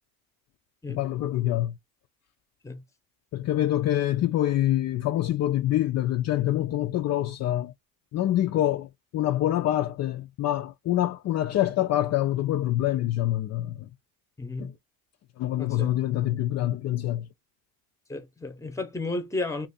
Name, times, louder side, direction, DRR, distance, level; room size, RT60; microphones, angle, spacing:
voice 1, 0.9-1.8 3.3-7.7 8.1-13.9 14.6-14.7 15.4-17.3, left 13 dB, 40° left, 0.5 m, -26 dB
voice 2, 14.4-14.7 15.6-15.9 18.1-19.7, left 2 dB, 5° left, 0.8 m, -33 dB
2.5 x 2.5 x 4.0 m
supercardioid pair, 100°, 42 cm